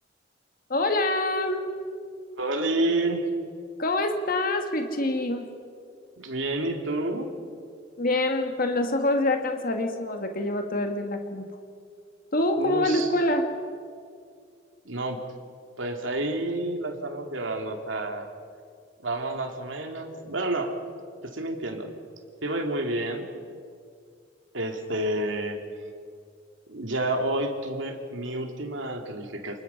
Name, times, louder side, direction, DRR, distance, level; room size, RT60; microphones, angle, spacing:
voice 1, 0.7-1.7 3.8-5.6 8.0-11.5 12.3-13.5 20.2-20.3, left 1 dB, 50° left, 5 dB, 1.6 m, -26 dB
voice 2, 2.4-3.3 6.2-7.3 12.6-13.1 14.8-15.2 15.8-18.3 19.0-20.8 21.2-21.9 22.4-23.3 24.5-25.6 26.7-29.6, right 1 dB, 85° right, 3 dB, 2.6 m, -29 dB
28.5 x 20.5 x 5.7 m, 2.2 s
head